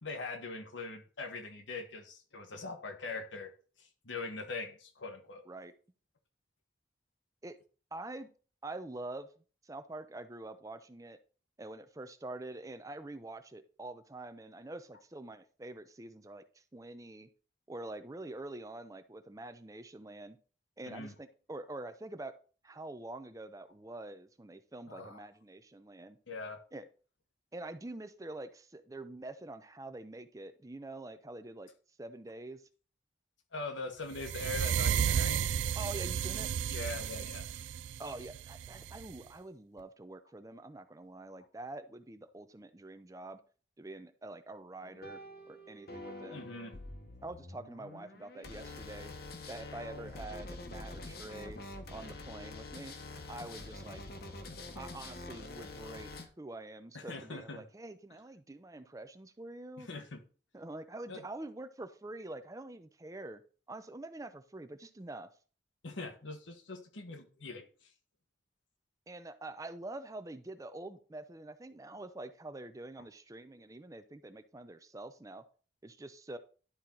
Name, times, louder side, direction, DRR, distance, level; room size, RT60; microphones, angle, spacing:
voice 1, 0.0-3.5 3.8-5.4 20.8-21.1 24.9-25.2 26.3-26.6 33.5-35.4 36.7-37.6 46.3-46.7 56.9-57.6 59.8-60.2 61.1-61.2 65.8-67.9, left 3 dB, 85° left, 5 dB, 1.3 m, -42 dB
voice 2, 7.9-8.3 8.6-9.3 9.6-11.2 11.6-17.3 17.7-20.4 20.8-22.3 22.6-26.2 26.7-26.9 27.5-31.7 32.0-32.7 35.8-36.5 38.0-43.4 43.8-45.2 45.5-46.4 47.2-49.1 49.5-51.6 51.9-52.9 53.3-54.0 54.8-59.9 60.5-63.4 63.7-65.3 69.1-75.4 75.8-76.4, right 2 dB, 20° right, 11 dB, 0.5 m, -46 dB
sound 1, 34.2-39.2, right 8 dB, 80° right, 0.3 m, -33 dB
sound 2, 44.8-56.3, left 2 dB, 55° left, 1.0 m, -46 dB
11.0 x 4.4 x 3.9 m, 0.38 s
head